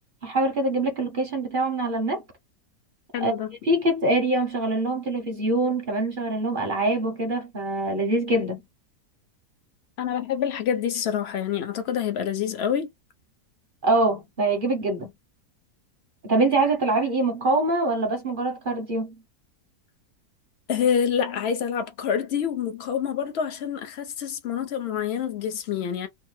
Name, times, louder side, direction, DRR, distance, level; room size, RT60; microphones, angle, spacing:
voice 1, 0.2-2.2 3.2-3.3 3.6-8.6 13.8-15.1 16.2-19.2, right 2 dB, 45° right, 0.7 m, -24 dB
voice 2, 3.1-3.5 10.0-12.9 20.7-26.1, left 8 dB, 55° left, 0.7 m, -27 dB
3.2 x 2.0 x 3.1 m
omnidirectional pair, 1.8 m